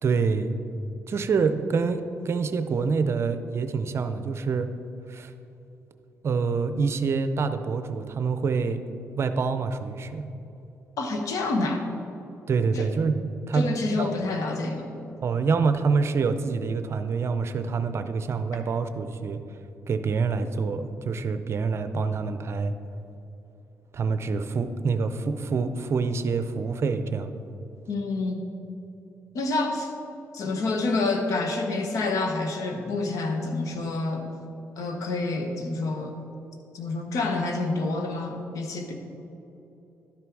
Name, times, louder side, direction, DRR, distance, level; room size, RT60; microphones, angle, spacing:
voice 1, 0.0-0.6 1.1-4.7 5.1-5.3 6.2-8.8 9.1-10.3 12.5-13.2 13.5-14.1 15.2-19.6 19.9-22.7 23.9-27.3, right 5 dB, 50° right, 10 dB, 0.6 m, -26 dB
voice 2, 11.0-11.8 12.7-12.9 13.5-14.9 27.9-28.4 29.3-29.9 30.3-34.4 34.8-36.1 36.7-38.9, left 3 dB, 70° left, 4 dB, 1.2 m, -28 dB
12.0 x 5.9 x 4.7 m, 3.0 s
cardioid pair, 90°, 6 cm